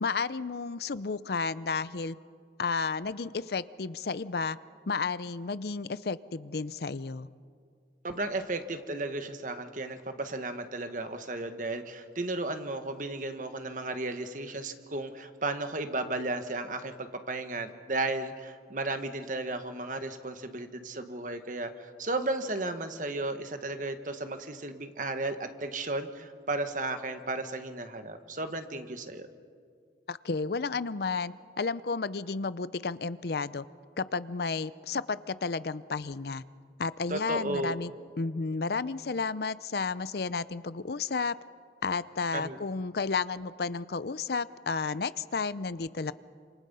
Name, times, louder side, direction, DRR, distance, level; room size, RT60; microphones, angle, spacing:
voice 1, 0.0-2.2 2.6-4.6 4.9-7.3 30.1-33.6 34.0-36.4 36.8-37.9 38.2-41.3 41.8-46.1, left 4 dB, 60° left, 16 dB, 0.6 m, -32 dB
voice 2, 8.0-29.3 37.1-37.7 42.3-42.6, right 2 dB, 45° right, 8 dB, 1.5 m, -34 dB
29.0 x 27.0 x 5.6 m, 2.1 s
head